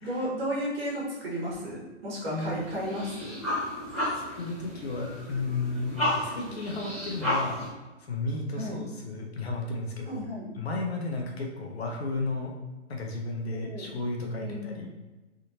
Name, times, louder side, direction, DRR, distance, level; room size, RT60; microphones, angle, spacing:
voice 1, 0.0-3.4 8.6-8.8 10.1-10.5 13.5-13.9 14.3-14.8, equal, 50° right, -5 dB, 1.4 m, -34 dB
sound 1, 2.1-7.7, left 1 dB, ahead, 0.3 m, -33 dB
voice 2, 2.3-2.6 4.1-7.6 8.0-10.2 10.5-12.5 12.9-14.9, left 2 dB, 55° left, 1 dB, 0.7 m, -33 dB
3.6 x 2.5 x 2.8 m, 1.2 s
hypercardioid pair, 160°, 37 cm